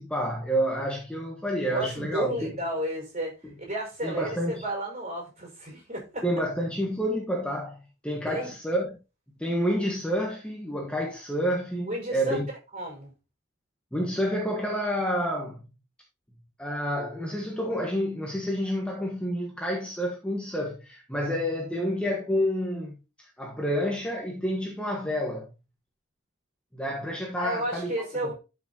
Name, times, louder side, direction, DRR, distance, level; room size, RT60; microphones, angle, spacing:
voice 1, 0.0-2.6 4.0-4.6 6.2-8.9 9.4-12.5 13.9-15.6 16.6-25.5 26.7-27.9 28.2-28.3, equal, 5° left, 1.5 m, -29 dB
voice 2, 1.6-6.2 8.3-8.5 11.8-12.4 12.7-13.1 27.4-28.3, right 1 dB, 35° right, 5.2 m, -32 dB
12.5 x 6.2 x 2.9 m
head